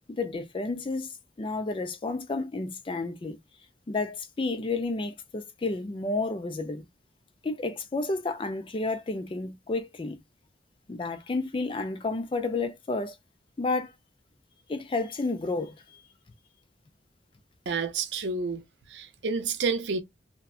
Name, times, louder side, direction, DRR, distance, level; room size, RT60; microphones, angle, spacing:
voice 1, 0.1-3.4 3.9-6.8 7.4-10.2 10.9-13.2 13.6-13.9 14.7-15.7, left 3 dB, 30° left, 0.4 m, -31 dB
voice 2, 17.7-18.6 18.9-20.0, right 4 dB, 80° right, 0.5 m, -29 dB
2.7 x 2.2 x 2.3 m
head